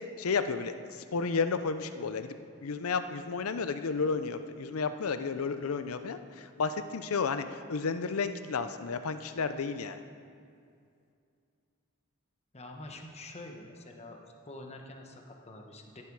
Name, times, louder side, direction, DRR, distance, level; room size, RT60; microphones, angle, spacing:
voice 1, 0.0-10.0, left 5 dB, 75° left, 10 dB, 0.6 m, -32 dB
voice 2, 12.5-14.2 14.4-16.0, left 2 dB, 30° left, 2 dB, 1.2 m, -46 dB
14.0 x 11.0 x 4.8 m, 2.4 s
head